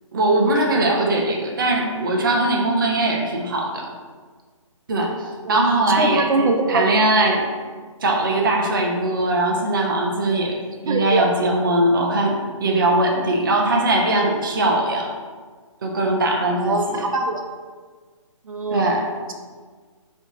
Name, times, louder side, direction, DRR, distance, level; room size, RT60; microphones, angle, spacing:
voice 1, 0.1-3.9 4.9-7.5 8.0-15.1 15.8-17.0 18.7-19.1, right 2 dB, 40° right, 0 dB, 0.5 m, -20 dB
voice 2, 5.9-6.8 10.9-11.3 16.6-17.4 18.4-18.8, right 2 dB, 85° right, 4 dB, 0.7 m, -22 dB
4.2 x 3.0 x 3.9 m, 1.5 s
hypercardioid pair, 175°, 17 cm